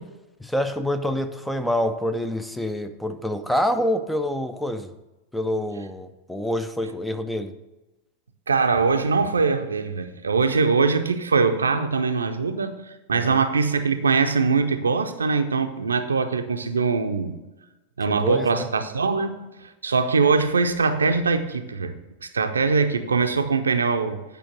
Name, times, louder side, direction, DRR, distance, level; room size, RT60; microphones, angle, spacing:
voice 1, 0.4-4.9 5.3-7.6 13.1-13.4 18.1-18.7, left 1 dB, 5° left, 0.5 m, -27 dB
voice 2, 8.5-12.8 13.1-17.3 18.0-21.9 22.2-24.2, right 4 dB, 75° right, 0.6 m, -22 dB
9.0 x 5.1 x 6.4 m
figure-of-eight pair, 90°, 0 cm